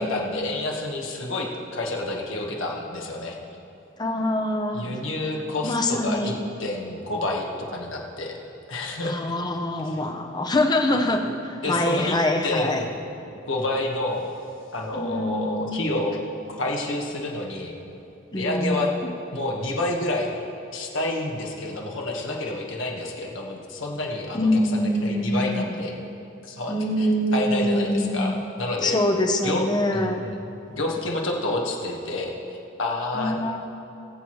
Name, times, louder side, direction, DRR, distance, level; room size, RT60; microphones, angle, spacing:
voice 1, 0.0-1.5 1.7-3.4 4.7-6.3 6.6-8.4 8.7-9.2 11.6-12.2 12.4-12.9 13.5-14.3 14.7-16.2 16.6-17.7 18.3-18.9 19.3-20.4 20.7-25.9 26.4-27.1 27.3-29.0 29.4-29.6 29.9-30.3 30.7-32.3 32.8-33.4, left 2 dB, 75° left, -1 dB, 1.5 m, -29 dB
voice 2, 4.0-5.0 5.6-6.4 9.0-12.8 14.9-15.8 18.3-19.1 24.3-25.8 26.7-28.4 28.8-30.3 33.1-33.6, left 1 dB, 20° left, 4 dB, 0.7 m, -24 dB
20.5 x 7.7 x 3.2 m, 2.7 s
head